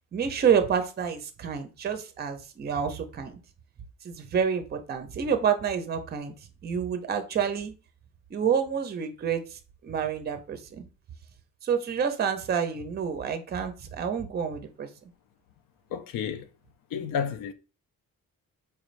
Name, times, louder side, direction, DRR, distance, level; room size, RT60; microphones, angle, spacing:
voice 1, 0.1-3.4 4.0-6.3 6.6-7.7 8.3-10.8 11.6-14.9, right 7 dB, 30° right, 0.5 m, -28 dB
voice 2, 15.9-16.5 16.9-17.5, left 7 dB, 80° left, 0.5 m, -31 dB
4.4 x 2.5 x 3.1 m
wide cardioid pair, 160°, 33 cm